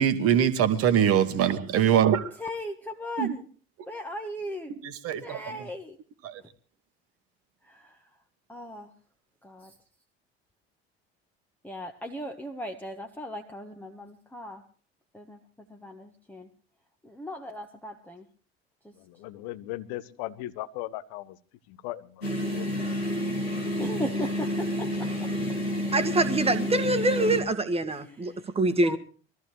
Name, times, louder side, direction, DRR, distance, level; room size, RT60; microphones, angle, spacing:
voice 1, 0.0-2.3 3.2-3.3 5.0-5.4 6.2-6.3, right 9 dB, 50° right, 11 dB, 1.6 m, -22 dB
voice 2, 2.4-3.5 3.9-4.7 5.2-6.0 7.6-8.0 8.5-8.9 9.4-9.7 11.6-14.6 15.1-15.4 15.7-16.5 17.0-18.2 18.8-18.9 23.8-25.3 27.9-28.4 28.8-29.0, equal, 5° left, 3 dB, 1.6 m, -37 dB
voice 3, 19.0-21.4 21.7-22.7, left 15 dB, 60° left, 14 dB, 1.2 m, -38 dB
sound 1, 22.2-27.4, equal, 85° left, 4.0 m, -29 dB
voice 4, 25.9-29.0, right 2 dB, 20° right, 11 dB, 1.7 m, -25 dB
22.5 x 14.5 x 3.2 m, 0.40 s
figure-of-eight pair, 60°, 31 cm